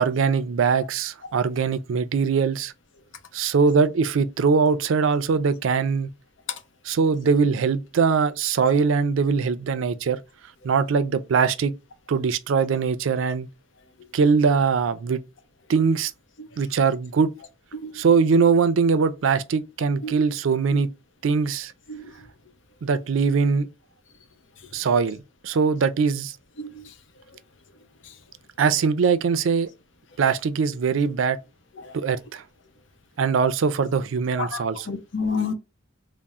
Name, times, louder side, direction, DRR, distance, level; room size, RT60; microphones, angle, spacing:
voice 1, 0.0-2.7 3.3-6.1 6.9-10.2 10.6-11.7 12.1-13.5 14.1-15.2 15.7-16.1 16.6-17.3 17.9-20.9 21.2-21.7 22.8-23.7 24.7-26.3 28.6-29.7 30.2-31.4 31.9-32.4 33.2-34.9, right 5 dB, 80° right, 0.4 m, -21 dB
voice 2, 17.7-18.0 20.0-20.1 21.9-22.1 26.6-26.9 31.8-32.0 34.4-35.5, left 4 dB, 65° left, 0.7 m, -30 dB
3.5 x 2.0 x 4.0 m
head